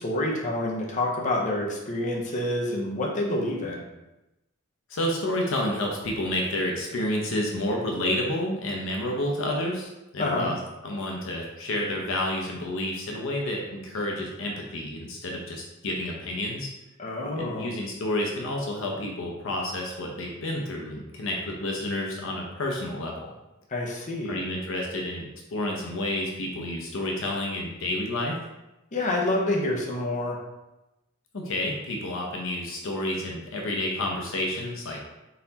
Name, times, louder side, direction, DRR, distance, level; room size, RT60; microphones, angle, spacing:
voice 1, 0.0-3.9 10.2-10.5 17.0-17.7 23.7-24.4 28.9-30.4, left 1 dB, 35° left, -2 dB, 0.8 m, -27 dB
voice 2, 4.9-16.7 17.4-23.3 24.3-25.2 25.5-28.4 31.3-35.0, left 1 dB, 65° left, 0 dB, 0.7 m, -30 dB
4.1 x 4.0 x 2.8 m, 0.97 s
head